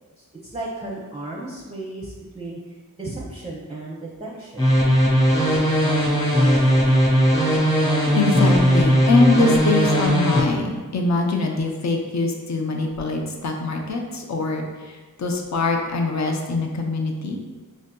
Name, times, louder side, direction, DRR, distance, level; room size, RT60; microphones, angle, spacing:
voice 1, 0.5-4.8, right 2 dB, 20° right, -4 dB, 0.5 m, -34 dB
sound 1, 4.6-10.4, equal, 10° left, 1.1 m, -18 dB
voice 2, 8.1-17.4, left 3 dB, 55° left, 2 dB, 0.5 m, -23 dB
5.1 x 2.6 x 2.2 m, 1.3 s
wide cardioid pair, 50°, 35 cm